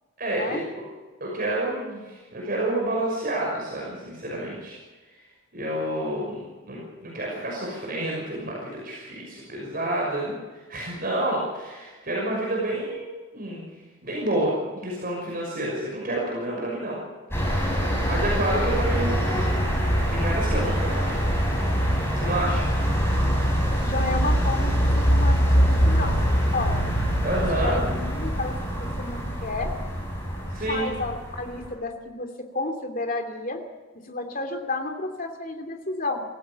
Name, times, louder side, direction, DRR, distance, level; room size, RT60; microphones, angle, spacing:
voice 1, 0.2-0.8 1.2-4.8 5.5-10.4 10.7-13.7 14.0-17.0 18.1-19.5 20.1-21.2 22.1-22.7 27.2-27.8 30.5-31.0, right 1 dB, 40° right, -3 dB, 6.0 m, -29 dB
sound 1, 17.3-31.7, equal, 10° left, 6.4 m, -24 dB
voice 2, 23.8-26.9 27.5-29.7 30.7-32.3 32.5-33.6 34.1-36.2, left 2 dB, 40° left, 4 dB, 2.9 m, -31 dB
26.0 x 15.5 x 7.1 m, 1.3 s
head